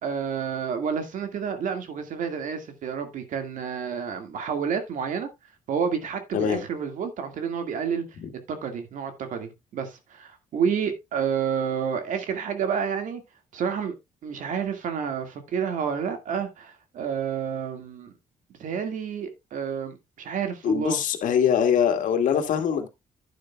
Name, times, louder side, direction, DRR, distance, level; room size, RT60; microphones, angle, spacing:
voice 1, 0.0-5.3 5.7-8.0 8.5-13.2 13.5-13.9 14.2-18.1 18.6-21.0, right 7 dB, 70° right, 2.1 m, -29 dB
voice 2, 20.6-22.9, left 8 dB, 75° left, 2.0 m, -23 dB
11.5 x 9.3 x 2.4 m
cardioid pair, 100°, 14 cm